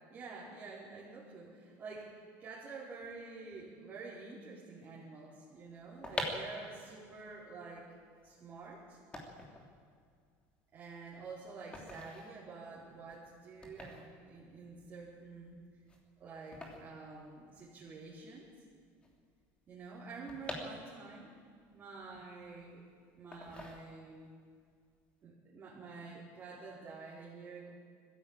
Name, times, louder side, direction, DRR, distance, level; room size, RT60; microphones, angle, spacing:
voice 1, 0.1-7.9 8.2-9.0 10.7-15.6 16.2-18.5 19.7-21.3 21.7-22.8 23.2-24.3 25.2-27.7, right 4 dB, 30° right, -7 dB, 4.7 m, -48 dB
sound 1, 5.8-17.9 18.2-18.3 18.4-21.3 21.7-22.8 23.3-24.3 24.7-24.9, left 2 dB, 15° left, 3.0 m, -46 dB
21.0 x 15.5 x 9.0 m, 2.1 s
cardioid pair, 145°, 7 cm